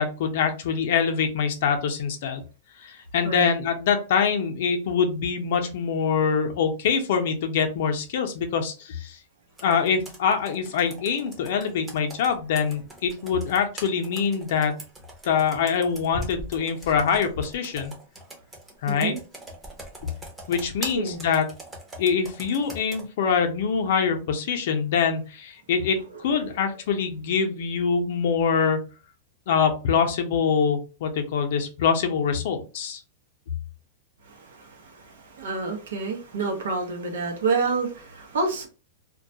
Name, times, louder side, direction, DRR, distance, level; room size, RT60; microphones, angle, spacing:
voice 1, 0.0-2.4 2.8-9.2 9.6-14.8 15.2-17.9 18.8-19.1 20.5-21.5 22.0-28.8 29.5-33.0, left 6 dB, 60° left, 0.5 m, -24 dB
Computer keyboard, 9.6-23.1, right 1 dB, 10° right, 0.6 m, -42 dB
voice 2, 18.9-19.2 21.0-21.2 26.3-26.6 34.2-38.7, right 4 dB, 90° right, 0.7 m, -29 dB
2.2 x 2.1 x 2.6 m
supercardioid pair, 155°, 0 cm